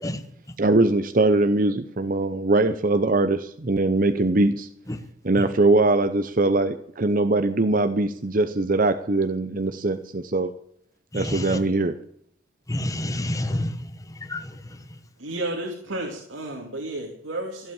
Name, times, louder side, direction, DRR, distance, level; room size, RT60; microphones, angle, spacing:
voice 1, 0.0-0.6 4.9-5.1 5.4-5.5 11.1-11.6 12.7-15.0, left 1 dB, 15° left, 9 dB, 1.1 m, -30 dB
voice 2, 0.6-4.7 5.3-10.5 11.1-11.9, right 2 dB, 45° right, 9 dB, 0.7 m, -21 dB
voice 3, 15.2-17.7, right 1 dB, 90° right, -1 dB, 2.6 m, -32 dB
14.5 x 8.4 x 8.9 m, 0.67 s
head